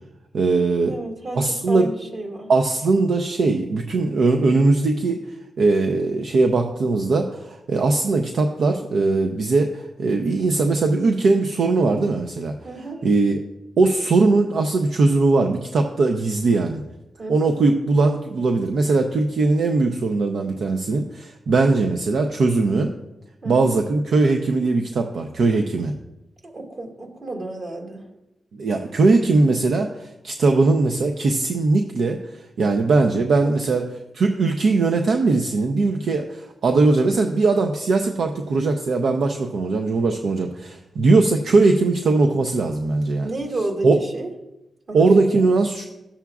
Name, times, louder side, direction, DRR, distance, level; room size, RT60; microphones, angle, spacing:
voice 1, 0.3-0.9 1.3-1.9 2.5-12.5 13.0-13.4 13.8-16.8 17.3-22.9 23.4-25.9 28.5-33.8 34.1-43.3 43.8-44.0 44.9-45.9, right 3 dB, 75° right, 4 dB, 0.6 m, -20 dB
voice 2, 0.9-2.5 12.6-13.0 17.2-17.5 23.4-23.8 26.4-28.1 33.4-33.8 43.2-44.3 44.9-45.1 45.3-45.5, right 2 dB, 50° right, 1 dB, 2.0 m, -32 dB
13.0 x 7.1 x 2.4 m, 0.92 s
wide cardioid pair, 105°, 0 cm